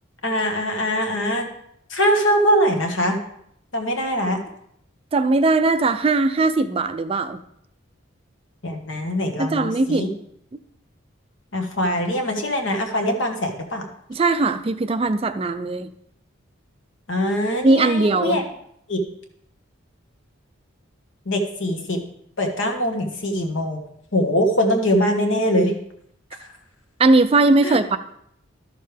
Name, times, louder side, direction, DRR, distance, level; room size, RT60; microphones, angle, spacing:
voice 1, 0.2-1.5 1.9-3.2 3.7-4.4 8.6-10.1 11.5-13.9 17.1-18.4 18.9-19.0 21.2-22.0 22.4-23.8 24.1-25.7 27.6-27.8, equal, 70° left, 3 dB, 1.5 m, -22 dB
voice 2, 5.1-7.4 9.4-10.1 14.1-15.9 17.6-18.4 27.0-28.0, right 3 dB, 30° right, 10 dB, 0.3 m, -19 dB
12.5 x 6.5 x 3.4 m, 0.71 s
head